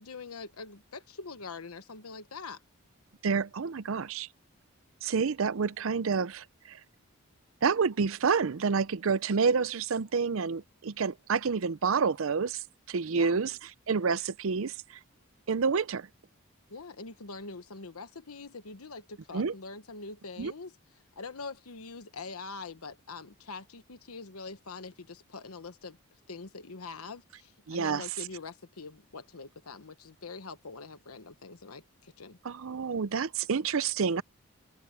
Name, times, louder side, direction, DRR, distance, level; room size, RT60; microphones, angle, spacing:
voice 1, 0.0-2.6 13.1-13.4 16.7-20.8 21.2-26.0 26.3-32.4, left 4 dB, 90° left, 1.2 m, -44 dB
voice 2, 3.2-4.3 5.0-6.8 7.6-12.6 12.9-13.6 13.9-14.7 15.5-16.1 19.3-19.5 20.4-20.5 27.7-28.0 32.4-34.2, right 5 dB, 70° right, 0.6 m, -28 dB
open air
head